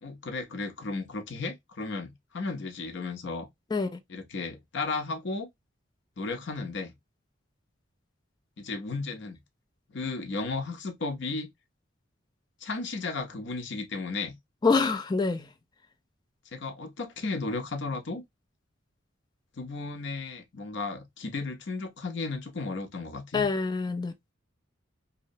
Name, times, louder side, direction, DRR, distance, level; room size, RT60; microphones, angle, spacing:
voice 1, 0.0-3.5 4.1-5.5 6.2-6.9 8.6-9.4 9.9-11.5 12.6-14.3 16.5-18.2 19.6-23.5, left 3 dB, 65° left, 0.7 m, -34 dB
voice 2, 14.6-15.5 23.3-24.3, left 4 dB, 20° left, 0.3 m, -26 dB
2.8 x 2.0 x 2.5 m
head